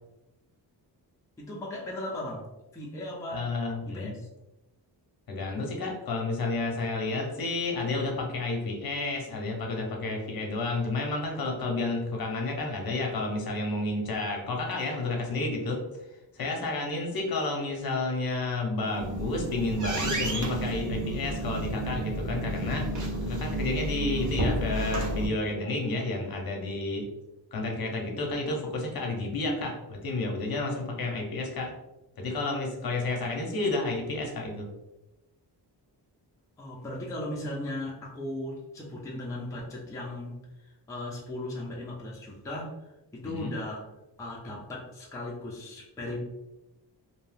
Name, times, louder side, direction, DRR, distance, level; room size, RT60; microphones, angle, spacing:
voice 1, 1.4-2.5 2.7-3.5 3.9-4.3 36.6-43.9 44.2-46.2, left 1 dB, 10° left, -4 dB, 0.4 m, -37 dB
voice 2, 3.3-4.1 5.3-15.8 16.3-22.9 23.2-27.1 27.5-31.7 32.2-34.7 43.2-43.5, left 2 dB, 55° left, 1 dB, 0.7 m, -31 dB
sound 1, 18.8-25.3, right 1 dB, 45° right, 0.6 m, -31 dB
2.6 x 2.2 x 3.2 m, 0.98 s
wide cardioid pair, 180°, 42 cm